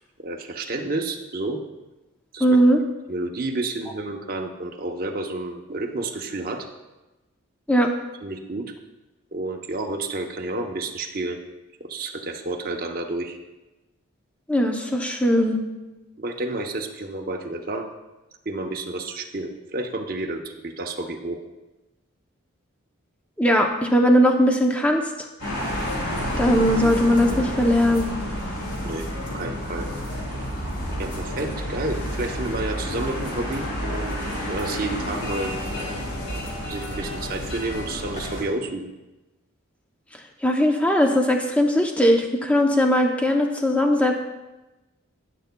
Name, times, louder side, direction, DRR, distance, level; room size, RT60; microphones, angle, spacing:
voice 1, 0.2-1.6 2.3-2.5 3.1-6.7 8.2-8.7 9.3-11.4 11.8-13.4 16.2-17.9 18.5-21.4 28.8-29.1 29.3-29.9 31.0-34.2 34.5-35.5 36.7-38.9, right 2 dB, 45° right, 2 dB, 0.7 m, -30 dB
voice 2, 2.4-2.8 7.7-7.9 14.5-15.6 23.4-25.0 26.4-28.1 40.4-44.1, equal, 5° left, 2 dB, 0.6 m, -19 dB
sound 1, 25.4-38.4, equal, 80° left, 3.6 m, -30 dB
19.5 x 6.7 x 2.2 m, 1.1 s
head